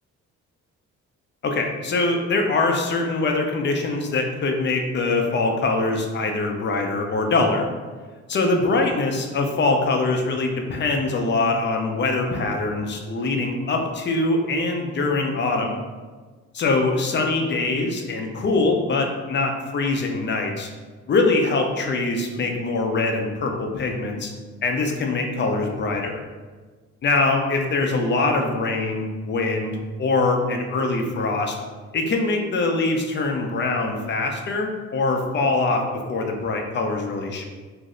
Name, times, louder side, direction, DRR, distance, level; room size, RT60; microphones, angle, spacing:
voice 1, 1.4-7.7 8.3-15.8 16.5-20.7 21.1-24.3 24.6-26.2 27.0-31.6 31.9-35.8 36.1-37.4, left 3 dB, 40° left, 3 dB, 0.5 m, -23 dB
2.6 x 2.0 x 3.7 m, 1.4 s
cardioid pair, 90°, 30 cm